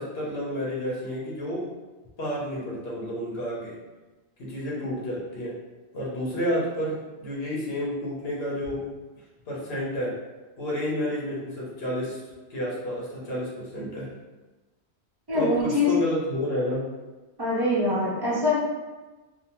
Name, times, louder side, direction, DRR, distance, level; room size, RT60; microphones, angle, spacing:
voice 1, 0.0-1.7 2.2-3.7 4.4-5.5 5.9-8.8 9.5-10.1 10.6-12.2 12.5-14.1 15.3-16.9, equal, 70° left, -5 dB, 1.0 m, -30 dB
voice 2, 15.3-15.9 17.4-18.6, left 2 dB, 30° right, -6 dB, 0.5 m, -24 dB
2.7 x 2.0 x 2.9 m, 1.2 s
omnidirectional pair, 1.1 m